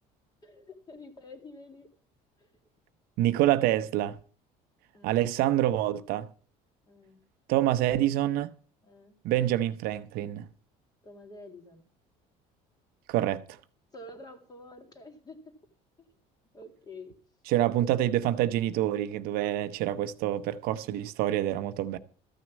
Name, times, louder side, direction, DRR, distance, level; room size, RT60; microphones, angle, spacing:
voice 1, 0.4-1.9 4.9-5.2 6.9-7.2 8.8-9.2 11.0-11.8 13.9-15.6 16.0-16.1 16.5-17.1 17.8-18.1, left 2 dB, 25° left, 2.3 m, -48 dB
voice 2, 3.2-4.2 5.0-6.3 7.5-8.5 9.2-10.5 13.1-13.4 17.5-22.0, right 13 dB, 75° right, 0.8 m, -26 dB
14.0 x 6.2 x 7.2 m
cardioid pair, 120°, 16 cm